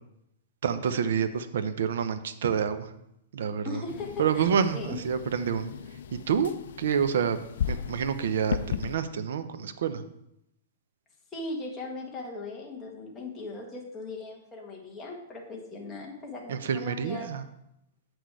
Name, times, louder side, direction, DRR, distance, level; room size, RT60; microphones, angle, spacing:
voice 1, 0.6-2.9 3.3-3.8 4.2-5.7 6.1-6.5 6.8-10.0 16.5-17.4, right 7 dB, 75° right, 11 dB, 0.7 m, -28 dB
voice 2, 3.6-5.0 11.3-17.3, left 2 dB, 10° left, -2 dB, 1.4 m, -39 dB
sound 1, 3.9-9.0, left 8 dB, 70° left, 0.4 m, -36 dB
8.0 x 6.1 x 4.7 m, 0.80 s
hypercardioid pair, 165°, 0 cm